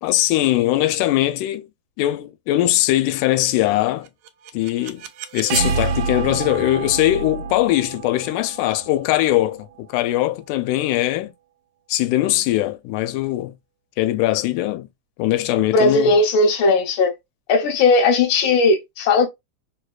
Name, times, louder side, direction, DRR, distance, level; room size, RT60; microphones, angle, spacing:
voice 1, 0.0-1.7 2.0-4.1 4.5-5.1 5.3-11.3 11.9-13.6 14.0-14.9 15.2-16.1, left 15 dB, 90° left, 2.0 m, -21 dB
sound 1, 4.1-9.9, right 5 dB, 80° right, 2.0 m, -28 dB
voice 2, 15.7-17.1 17.5-19.3, left 3 dB, 55° left, 1.5 m, -17 dB
4.6 x 2.3 x 2.3 m
omnidirectional pair, 3.5 m